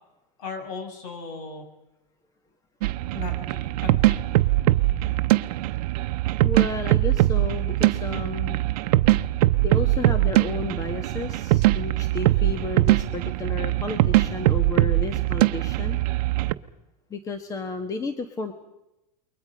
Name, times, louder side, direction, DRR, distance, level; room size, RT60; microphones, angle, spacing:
voice 1, 0.4-1.7 3.1-4.2, left 4 dB, 60° left, 4 dB, 7.1 m, -37 dB
sound 1, 2.8-16.5, right 17 dB, 65° right, 0.9 m, -22 dB
voice 2, 6.4-8.6 9.6-16.0 17.1-18.5, left 3 dB, 15° left, 8 dB, 1.4 m, -32 dB
29.0 x 22.5 x 5.2 m, 0.95 s
supercardioid pair, 145°, 21 cm